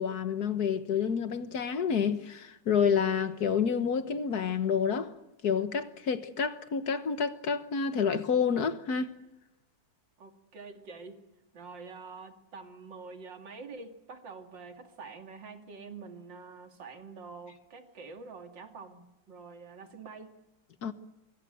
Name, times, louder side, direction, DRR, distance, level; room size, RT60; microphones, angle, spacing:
voice 1, 0.0-5.1 5.4-9.1 20.8-20.9, left 6 dB, 60° left, 1.7 m, -29 dB
voice 2, 10.2-11.2 11.5-20.3, right 4 dB, 80° right, 3.0 m, -46 dB
25.0 x 24.5 x 7.7 m
omnidirectional pair, 2.0 m